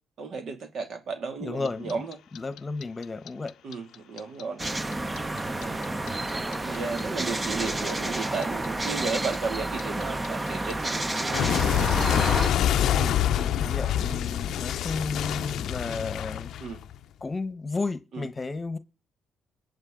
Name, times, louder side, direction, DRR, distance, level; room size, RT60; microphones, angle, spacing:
voice 1, 0.2-2.2 3.6-4.7 5.5-5.8 6.6-11.6 12.9-13.2 16.6-16.8 18.1-18.3, right 4 dB, 60° right, 2.5 m, -34 dB
voice 2, 1.4-2.0 2.3-3.5 13.3-16.5 17.2-18.8, left 3 dB, 25° left, 1.2 m, -33 dB
Clock, 1.6-4.6 4.9-7.9 8.2-17.0, left 10 dB, 75° left, 0.5 m, -26 dB
sound 1, 4.6-12.5, right 2 dB, 20° right, 0.9 m, -30 dB
20.5 x 8.2 x 3.8 m
cardioid pair, 90°, 0 cm